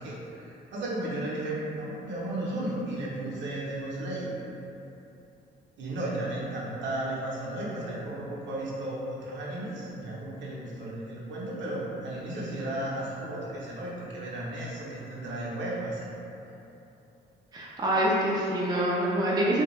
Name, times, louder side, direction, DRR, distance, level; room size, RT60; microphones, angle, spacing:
voice 1, 0.0-4.3 5.8-16.1, right 1 dB, 65° right, -6 dB, 0.7 m, -34 dB
voice 2, 17.5-19.6, right 1 dB, 20° right, -5 dB, 0.4 m, -26 dB
2.3 x 2.2 x 3.0 m, 2.9 s
cardioid pair, 90°, 20 cm